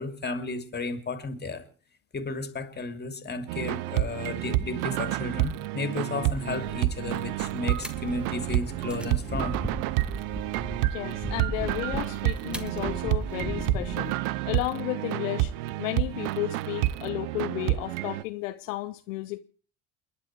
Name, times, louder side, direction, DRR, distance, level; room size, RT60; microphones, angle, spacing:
voice 1, 0.0-1.6 2.1-9.6, left 3 dB, 25° left, 2.8 m, -33 dB
sound 1, 3.5-18.2, right 16 dB, 65° right, 0.8 m, -29 dB
sound 2, 6.2-14.1, right 1 dB, 5° right, 1.9 m, -37 dB
voice 2, 10.8-14.1 14.5-15.5 15.8-19.4, left 18 dB, 70° left, 1.0 m, -33 dB
29.5 x 10.5 x 4.7 m
hypercardioid pair, 65°, 39 cm